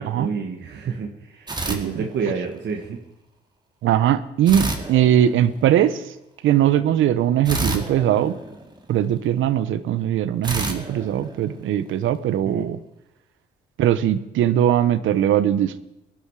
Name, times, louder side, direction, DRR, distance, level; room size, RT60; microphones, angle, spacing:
voice 1, 0.0-3.0 12.3-12.7, right 5 dB, 60° right, 3 dB, 1.6 m, -30 dB
sound 1, 1.5-2.6 4.5-5.8 7.4-9.1 10.4-12.0, right 2 dB, 20° right, 2.3 m, -30 dB
voice 2, 1.7-2.1 3.8-6.1 6.4-8.3 8.9-12.8 13.8-15.8, right 10 dB, 80° right, 14 dB, 0.9 m, -20 dB
18.5 x 12.5 x 4.8 m, 0.90 s
cardioid pair, 90°, 20 cm